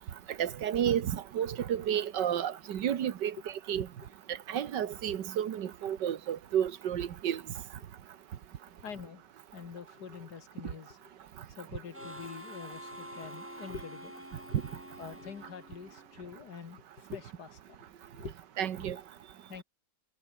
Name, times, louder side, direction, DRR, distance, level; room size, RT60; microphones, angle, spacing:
voice 1, 0.4-3.4 3.7-3.9 4.5-7.4 18.6-19.0, right 9 dB, 85° right, 1.8 m, -31 dB
voice 2, 8.8-9.2 9.5-11.1 11.6-14.2 14.6-14.7 15.0-17.8 18.2-18.3 18.8-18.9 19.5-19.6, left 6 dB, 70° left, 2.3 m, -45 dB
Harmonica, 11.9-16.4, equal, 5° right, 4.9 m, -47 dB
omnidirectional pair, 1.8 m